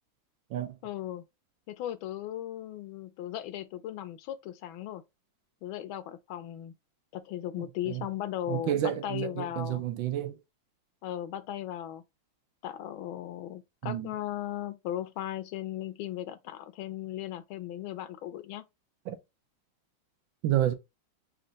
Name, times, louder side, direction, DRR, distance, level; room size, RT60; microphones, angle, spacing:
voice 1, 0.8-1.2 1.7-5.0 5.6-6.7 7.1-9.8 11.0-12.0 12.6-18.6, left 12 dB, 80° left, 1.4 m, -37 dB
voice 2, 8.5-10.4 13.8-14.1 19.1-19.2 20.4-20.7, right 12 dB, 75° right, 1.3 m, -30 dB
4.4 x 2.5 x 3.9 m
omnidirectional pair, 2.2 m